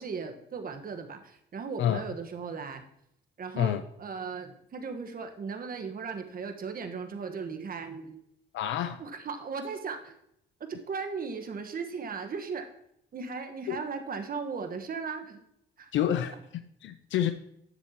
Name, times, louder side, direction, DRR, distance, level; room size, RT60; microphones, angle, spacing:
voice 1, 0.0-2.8 3.4-8.2 9.0-10.1 10.7-12.6 13.1-15.4 15.8-15.9, right 5 dB, 45° right, 6 dB, 1.3 m, -37 dB
voice 2, 8.5-9.0 13.7-13.8 15.9-17.3, left 10 dB, 75° left, 10 dB, 0.5 m, -28 dB
10.0 x 7.2 x 2.9 m, 0.74 s
cardioid pair, 90°, 20 cm